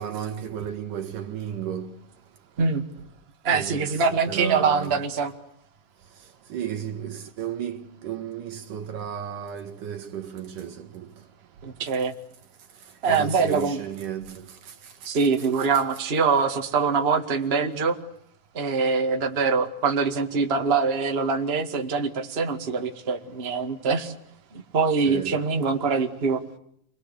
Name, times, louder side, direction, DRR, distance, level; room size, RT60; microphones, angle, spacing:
voice 1, 0.0-2.0 3.5-5.0 6.5-11.1 13.1-14.9 15.4-15.7 25.0-25.4, right 9 dB, 75° right, 3.1 m, -34 dB
voice 2, 3.4-5.3 11.6-12.1 13.0-13.8 15.0-18.0 18.5-24.1 24.5-26.4, right 5 dB, 20° right, 1.8 m, -24 dB
29.5 x 21.5 x 8.3 m
omnidirectional pair, 3.8 m